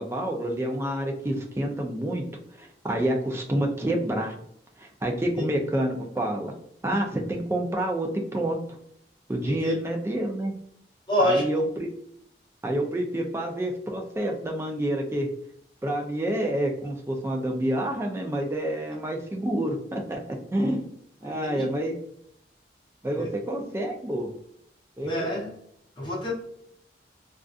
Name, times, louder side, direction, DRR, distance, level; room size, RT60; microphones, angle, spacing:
voice 1, 0.0-2.2 2.6-4.4 4.8-6.5 6.8-8.6 9.3-10.5 11.2-11.9 12.6-15.3 15.8-20.2 20.5-20.9 21.2-21.9 23.0-24.3 25.0-25.3, right 1 dB, 15° right, 1 dB, 0.3 m, -28 dB
voice 2, 9.4-9.7 11.1-11.5 21.2-21.7 23.1-23.3 25.0-25.5 26.0-26.3, left 1 dB, 25° left, -4 dB, 0.7 m, -27 dB
2.5 x 2.4 x 2.3 m, 0.71 s
head